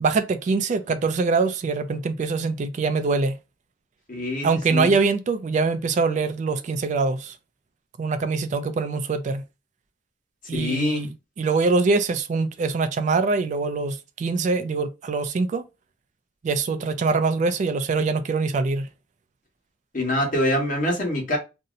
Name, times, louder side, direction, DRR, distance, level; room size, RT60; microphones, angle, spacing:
voice 1, 0.0-3.3 4.4-7.3 8.0-9.4 10.5-11.1 11.4-15.6 16.4-18.9, right 4 dB, 40° right, 0.3 m, -23 dB
voice 2, 4.1-5.0 10.5-11.1 19.9-21.4, left 1 dB, 45° left, 1.2 m, -25 dB
2.7 x 2.0 x 3.7 m
head